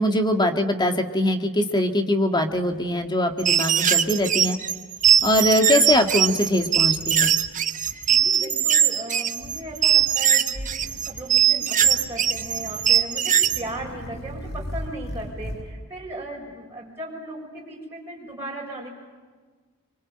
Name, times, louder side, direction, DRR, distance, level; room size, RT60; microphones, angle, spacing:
voice 1, 0.0-4.6 5.2-7.3, left 1 dB, 20° left, 6 dB, 2.1 m, -22 dB
sound 1, 2.5-3.7 4.0-4.5 5.0-5.5 5.9-7.5 7.8-8.3 9.4-10.1 10.5-11.4 11.8-13.0 13.4-15.7, equal, 50° left, 4.5 m, -39 dB
sound 2, 3.4-13.6, right 9 dB, 35° right, 1.1 m, -21 dB
voice 2, 7.8-18.9, right 1 dB, 10° right, -5 dB, 6.7 m, -37 dB
25.0 x 24.5 x 8.8 m, 1.4 s
head